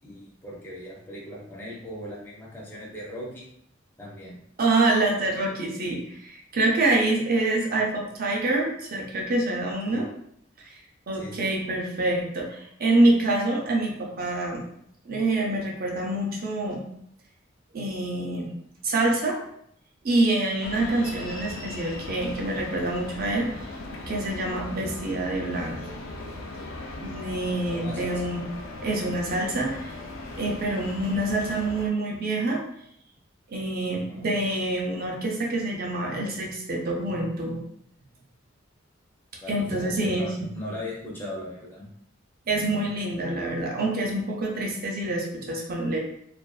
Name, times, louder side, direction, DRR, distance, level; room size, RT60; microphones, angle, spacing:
voice 1, 0.0-3.5 4.0-4.4 9.9-10.1 11.1-11.5 27.7-28.2 33.9-34.3 39.4-41.9, left 1 dB, 10° left, -4 dB, 0.5 m, -38 dB
voice 2, 4.6-10.0 11.1-14.6 15.1-16.8 17.7-18.5 18.8-19.4 20.0-23.5 24.1-25.8 27.0-28.4 28.8-29.9 30.4-32.6 33.5-37.6 39.5-40.5 42.5-46.0, right 2 dB, 50° right, -1 dB, 0.6 m, -26 dB
sound 1, 20.6-31.9, left 2 dB, 90° left, 0.4 m, -38 dB
2.5 x 2.3 x 2.3 m, 0.70 s
head